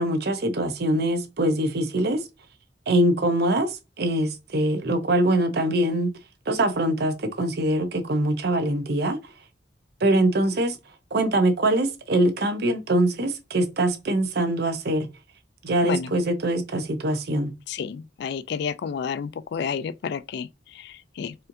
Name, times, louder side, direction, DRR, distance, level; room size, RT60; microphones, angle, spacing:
voice 1, 0.0-2.3 2.9-6.1 6.5-9.3 10.0-10.8 11.1-15.1 15.6-17.5, right 1 dB, 65° right, 0.7 m, -23 dB
voice 2, 17.7-21.4, left 6 dB, 65° left, 0.3 m, -31 dB
4.2 x 2.6 x 2.6 m
head